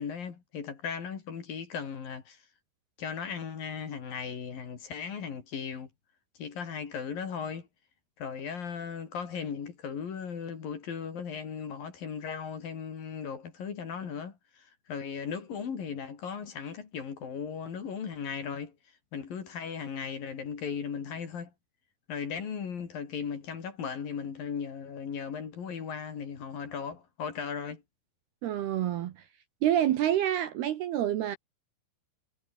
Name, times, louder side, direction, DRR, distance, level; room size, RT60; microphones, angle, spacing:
voice 1, 0.0-2.4 3.0-5.9 6.4-7.7 8.2-18.8 19.1-21.5 22.1-27.8, left 6 dB, 50° left, 4.5 m, -37 dB
voice 2, 28.4-29.2 29.6-31.4, right 11 dB, 65° right, 2.8 m, -27 dB
omnidirectional pair, 5.7 m